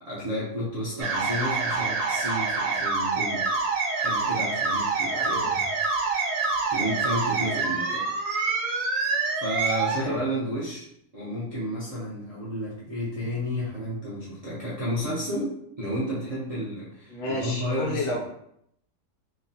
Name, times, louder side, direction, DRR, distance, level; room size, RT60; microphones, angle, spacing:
voice 1, 0.0-3.4 3.9-5.4 6.7-8.1 9.4-10.8 11.1-18.2, equal, 50° right, -9 dB, 0.4 m, -31 dB
sound 1, 1.0-10.0, right 4 dB, 70° right, 0.9 m, -26 dB
voice 2, 5.1-5.7 10.0-10.2 17.1-18.2, left 1 dB, 80° left, -2 dB, 1.3 m, -31 dB
3.0 x 2.0 x 2.6 m, 0.73 s
omnidirectional pair, 1.6 m